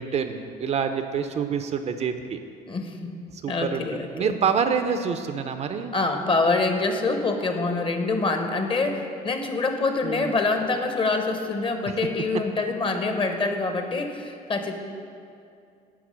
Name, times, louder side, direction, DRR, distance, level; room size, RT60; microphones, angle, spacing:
voice 1, 0.0-2.4 3.3-3.9 4.1-5.9 10.0-10.4, right 6 dB, 40° right, 8 dB, 0.4 m, -27 dB
voice 2, 2.7-3.1 3.5-4.3 5.9-14.8, left 3 dB, 30° left, 6 dB, 0.7 m, -25 dB
9.5 x 3.6 x 6.1 m, 2.4 s
cardioid pair, 110°, 17 cm